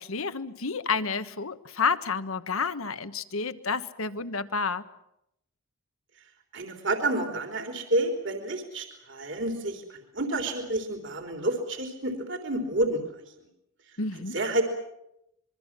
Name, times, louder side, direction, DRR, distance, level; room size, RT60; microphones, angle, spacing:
voice 1, 0.0-4.8 14.0-14.4, left 5 dB, 70° left, 12 dB, 1.3 m, -30 dB
voice 2, 6.5-13.0 14.3-14.6, right 1 dB, 55° right, 4 dB, 3.5 m, -29 dB
26.0 x 23.5 x 7.5 m, 0.82 s
head